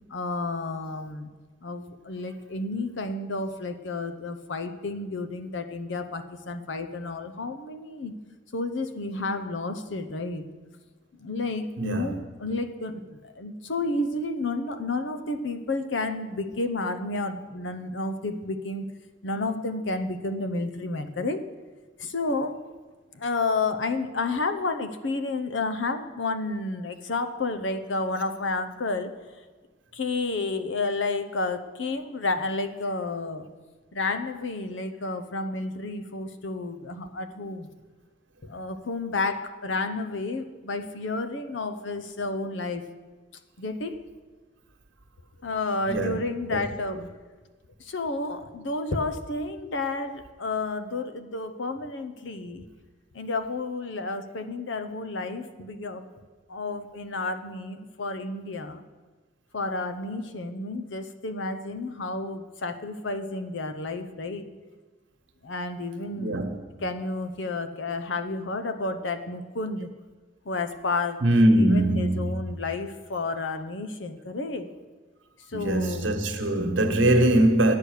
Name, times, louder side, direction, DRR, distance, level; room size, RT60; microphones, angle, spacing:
voice 1, 0.1-1.3 1.6-8.1 8.5-10.4 11.1-18.9 19.2-21.4 22.0-22.6 23.1-29.2 29.9-33.5 33.9-37.7 38.4-42.9 43.6-44.0 45.4-47.1 47.8-52.7 53.1-58.8 59.5-64.5 65.4-66.4 66.8-69.9 70.4-71.2 71.6-74.7 75.5-76.1 76.9-77.3, left 3 dB, 70° left, 0.8 m, -31 dB
voice 2, 11.8-12.2 45.9-46.2 46.5-46.6 66.2-66.5 71.2-72.4 75.5-77.8, right 1 dB, 80° right, 1.3 m, -22 dB
9.6 x 8.4 x 6.5 m
head